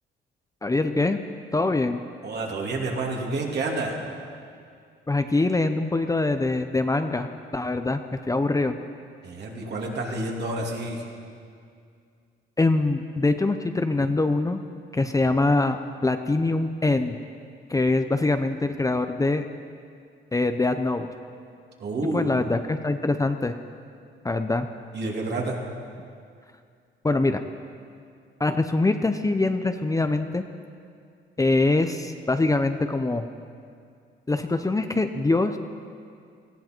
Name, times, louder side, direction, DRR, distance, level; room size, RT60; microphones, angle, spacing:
voice 1, 0.6-1.2 1.5-2.0 5.1-7.3 7.5-8.0 8.3-8.7 12.6-14.6 14.9-17.2 17.7-19.5 20.3-21.1 22.1-23.6 24.2-24.7 27.0-27.4 28.4-30.4 31.4-33.3 34.3-35.6, left 2 dB, 15° left, 8 dB, 0.7 m, -23 dB
voice 2, 2.2-4.0 9.2-11.0 21.8-22.5 24.9-25.7, right 2 dB, 60° right, -1 dB, 2.7 m, -29 dB
19.0 x 15.0 x 4.5 m, 2.3 s
cardioid pair, 90°, 20 cm